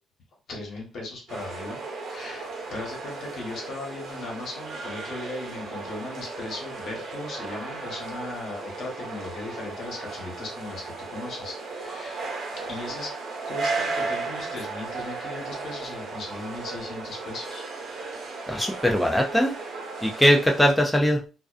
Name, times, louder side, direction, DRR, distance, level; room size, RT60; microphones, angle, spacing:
voice 1, 0.5-1.8 2.1-13.1 13.4-17.9, left 2 dB, 65° left, -1 dB, 1.1 m, -37 dB
sound 1, 1.3-20.7, right 3 dB, 70° right, 0.8 m, -35 dB
voice 2, 18.5-19.5 20.0-21.2, equal, 5° left, 1 dB, 0.4 m, -21 dB
2.4 x 2.2 x 2.4 m, 0.33 s
cardioid pair, 90°, 0 cm